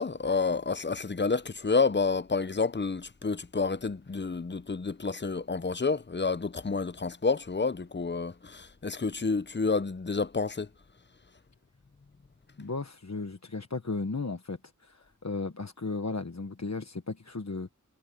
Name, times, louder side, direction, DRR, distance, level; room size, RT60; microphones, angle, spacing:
voice 1, 0.0-10.7, left 4 dB, 35° left, 0.6 m, -29 dB
voice 2, 12.6-17.7, left 3 dB, 60° left, 1.2 m, -35 dB
wide cardioid pair, 45°, 31 cm